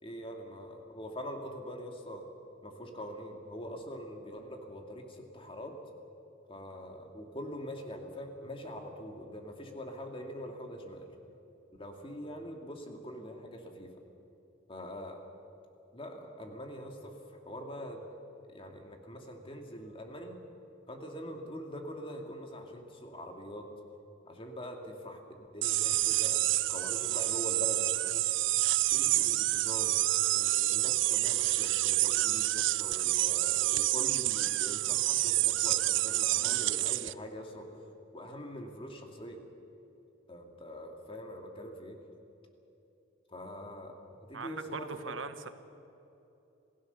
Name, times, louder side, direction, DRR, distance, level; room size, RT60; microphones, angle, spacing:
voice 1, 0.0-2.3 2.6-5.8 6.5-11.1 11.8-13.9 14.7-15.3 15.9-17.2 17.4-18.1 18.5-20.4 20.9-23.7 24.3-28.2 28.9-30.0 30.3-37.8 38.1-39.4 40.3-42.0 43.3-43.9 44.3-45.1, equal, 25° left, 3 dB, 2.4 m, -43 dB
sound 1, 25.6-37.1, right 17 dB, 65° right, 0.4 m, -28 dB
voice 2, 44.3-45.5, right 4 dB, 85° right, 10 dB, 1.2 m, -40 dB
27.5 x 16.5 x 6.9 m, 3.0 s
head